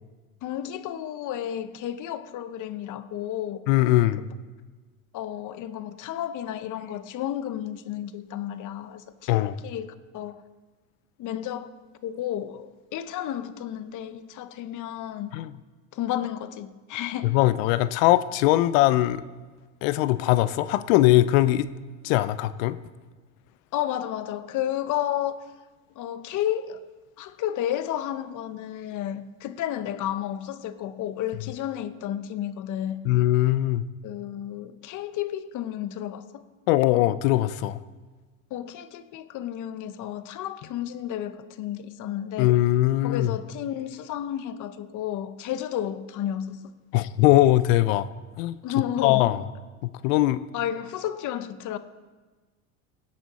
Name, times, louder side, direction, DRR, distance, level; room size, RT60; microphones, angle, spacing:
voice 1, 0.4-3.6 4.2-4.3 5.1-9.9 10.1-10.4 11.2-11.8 12.0-15.4 15.9-17.5 23.7-25.4 26.0-26.8 27.2-33.0 34.0-36.4 38.5-42.5 43.0-46.7 48.6-49.3 50.5-51.8, left 11 dB, 50° left, 0.9 m, -32 dB
voice 2, 3.7-4.2 9.3-9.6 15.3-15.5 17.2-19.2 19.8-21.7 22.0-22.8 33.0-33.8 36.7-37.8 42.4-43.4 46.9-48.1 48.4-48.6 49.0-49.4 49.8-50.4, left 16 dB, 75° left, 0.6 m, -21 dB
17.0 x 8.7 x 4.2 m
supercardioid pair, 110°, 40 cm